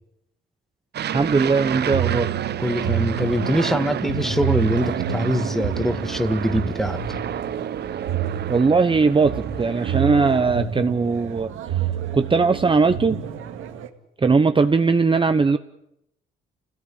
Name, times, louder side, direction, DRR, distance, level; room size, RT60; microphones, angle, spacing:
Aircraft, 0.9-10.5, right 10 dB, 55° right, 0.8 m, -31 dB
voice 1, 1.1-2.3 8.5-11.8 12.1-13.2 14.2-15.6, right 4 dB, 25° right, 9 dB, 1.0 m, -19 dB
sound 1, 1.2-13.9, right 9 dB, 90° right, 2.2 m, -29 dB
voice 2, 2.6-7.0, equal, ahead, 10 dB, 2.0 m, -23 dB
28.0 x 17.0 x 8.8 m, 0.83 s
cardioid pair, 90°, 20 cm